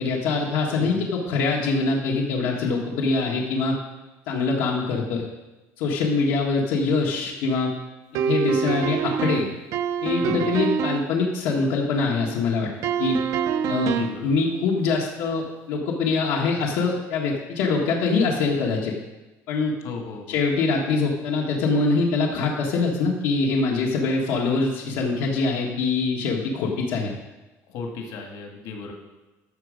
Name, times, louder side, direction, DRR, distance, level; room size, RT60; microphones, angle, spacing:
voice 1, 0.0-3.8 4.3-5.3 5.8-7.7 8.2-9.5 10.0-12.7 13.0-13.2 13.6-18.9 19.5-19.7 20.3-27.1, left 4 dB, 80° left, -2 dB, 1.5 m, -24 dB
voice 2, 0.8-1.1 10.2-10.7 13.7-14.4 19.8-20.4 27.7-28.9, left 4 dB, 60° left, 2 dB, 1.8 m, -36 dB
sound 1, 8.2-11.2 12.8-14.3, right 7 dB, 50° right, 0.5 m, -25 dB
13.5 x 6.1 x 5.1 m, 1.1 s
cardioid pair, 170°, 7 cm